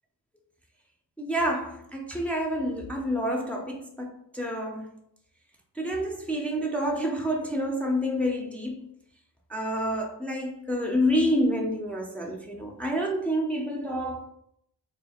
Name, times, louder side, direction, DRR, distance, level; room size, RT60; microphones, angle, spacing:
voice 1, 1.2-4.9 5.8-8.9 9.5-14.2, equal, 5° left, 0.7 m, -28 dB
3.2 x 2.8 x 4.3 m
cardioid pair, 60°, 44 cm